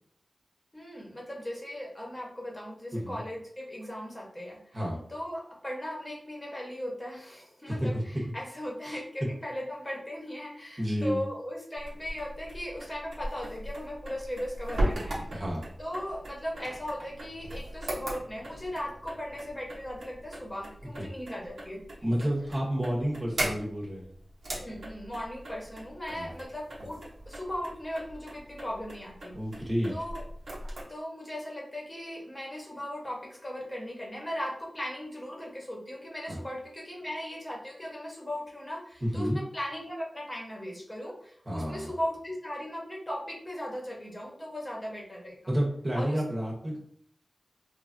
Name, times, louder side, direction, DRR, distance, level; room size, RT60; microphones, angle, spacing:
voice 1, 0.7-4.8 5.1-15.2 15.8-22.1 24.5-29.3 29.9-30.3 30.9-45.5 45.9-46.2, left 1 dB, 20° left, -2 dB, 0.9 m, -38 dB
voice 2, 7.7-8.0 8.9-9.0 10.8-11.2 15.3-15.7 21.0-21.1 22.0-24.1 26.1-26.3 29.3-29.9 36.3-36.4 39.0-39.4 41.5-41.9 45.5-46.8, equal, 35° right, -2 dB, 0.9 m, -30 dB
sound 1, 11.8-30.8, right 1 dB, 85° right, 0.8 m, -39 dB
3.2 x 2.3 x 2.5 m, 0.63 s
wide cardioid pair, 70°, 0 cm